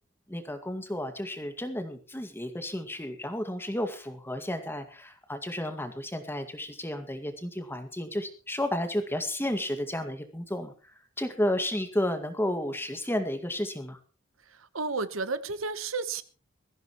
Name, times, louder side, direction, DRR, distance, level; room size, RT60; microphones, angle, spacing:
voice 1, 0.3-10.7 11.2-14.0, left 1 dB, 10° left, 7 dB, 2.0 m, -32 dB
voice 2, 14.7-16.2, right 4 dB, 80° right, 12 dB, 1.1 m, -31 dB
21.0 x 15.0 x 3.1 m, 0.36 s
head